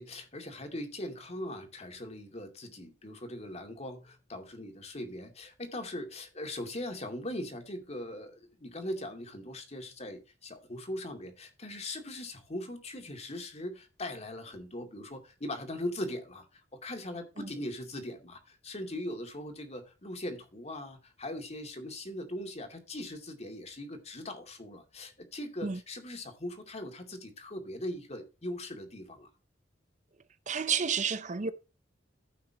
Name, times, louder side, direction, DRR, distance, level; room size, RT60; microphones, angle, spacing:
voice 1, 0.0-29.3, left 1 dB, 35° left, 2.4 m, -40 dB
voice 2, 30.5-31.5, right 6 dB, 40° right, 0.6 m, -30 dB
15.0 x 5.9 x 2.9 m
head